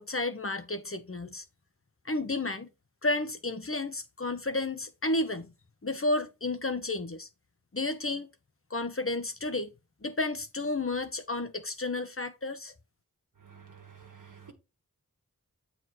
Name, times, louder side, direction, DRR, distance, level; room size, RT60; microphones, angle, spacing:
voice 1, 0.0-1.4 2.0-2.7 3.0-5.5 5.8-7.3 7.7-8.3 8.7-9.7 10.0-12.7, left 2 dB, 40° left, 1.0 m, -32 dB
voice 2, 13.4-14.5, right 7 dB, 65° right, 1.8 m, -51 dB
8.1 x 4.3 x 4.3 m
wide cardioid pair, 45°, 34 cm